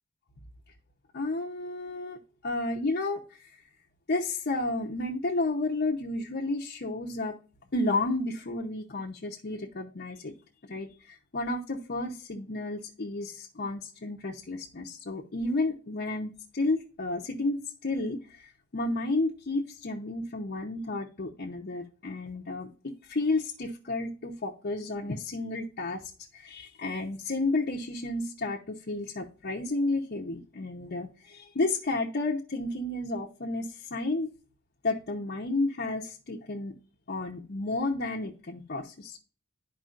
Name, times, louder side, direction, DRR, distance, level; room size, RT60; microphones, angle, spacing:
voice 1, 1.1-2.2 2.4-3.2 3.5-3.6 4.1-7.4 7.7-10.3 10.6-26.0 26.3-34.3 34.8-36.7 37.1-39.2, left 2 dB, 50° left, 0.8 m, -32 dB
11.5 x 4.8 x 2.5 m
head